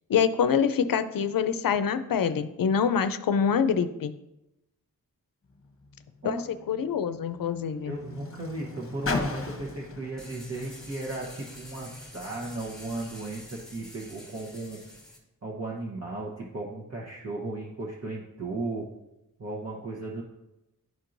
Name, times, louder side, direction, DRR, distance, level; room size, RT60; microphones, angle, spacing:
voice 1, 0.1-4.1 6.2-6.4 6.7-7.9, left 7 dB, 70° left, 12 dB, 0.5 m, -25 dB
Car, 5.4-12.0 12.9-13.0, left 3 dB, 40° left, 0.9 m, -38 dB
voice 2, 7.9-14.8 15.4-18.9 19.4-20.2, right 2 dB, 45° right, -5 dB, 1.1 m, -35 dB
sound 1, 10.2-15.2, left 1 dB, ahead, 1.3 m, -47 dB
11.0 x 4.5 x 2.6 m, 0.91 s
wide cardioid pair, 120°, 35 cm